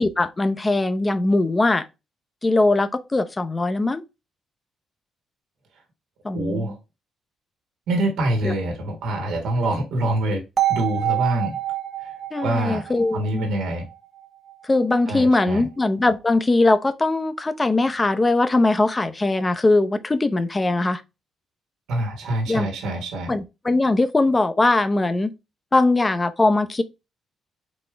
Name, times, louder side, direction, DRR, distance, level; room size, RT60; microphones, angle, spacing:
voice 1, 0.0-1.9 2.4-4.0 6.2-6.8 8.4-8.5 12.3-13.5 14.6-21.0 22.5-22.7 23.3-25.3 25.7-26.8, left 2 dB, 20° left, 0.6 m, -20 dB
voice 2, 6.3-6.8 7.9-10.4 10.7-11.6 12.0-12.1 12.4-12.8 13.1-13.9 15.1-15.7 21.9-23.3, right 1 dB, 80° right, 1.5 m, -25 dB
sound 1, 10.6-14.5, right 12 dB, 50° right, 0.7 m, -27 dB
4.2 x 3.6 x 3.3 m
cardioid pair, 90°, 0 cm